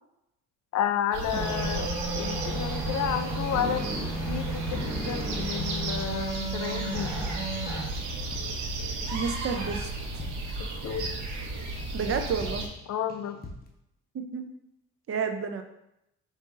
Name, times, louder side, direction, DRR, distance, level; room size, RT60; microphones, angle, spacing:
voice 1, 0.7-1.9 2.1-3.9 4.3-7.2 10.6-11.1 12.9-13.4, left 8 dB, 65° left, 9 dB, 0.5 m, -31 dB
sound 1, 1.1-12.7, right 2 dB, 80° right, 0.9 m, -34 dB
sound 2, 1.3-7.8, right 2 dB, 10° right, 1.0 m, -34 dB
sound 3, 2.9-3.8 4.1-6.0 6.3-6.6 6.9-7.4 7.6-11.5 11.7-12.0 12.3-12.8 13.1-13.7, left 2 dB, 30° left, 0.9 m, -45 dB
voice 2, 9.1-9.9 10.1-10.2 11.9-12.6 14.1-14.4 15.1-15.6, right 5 dB, 50° right, 6 dB, 0.6 m, -30 dB
5.1 x 2.7 x 3.7 m, 0.83 s
cardioid pair, 90°, 30 cm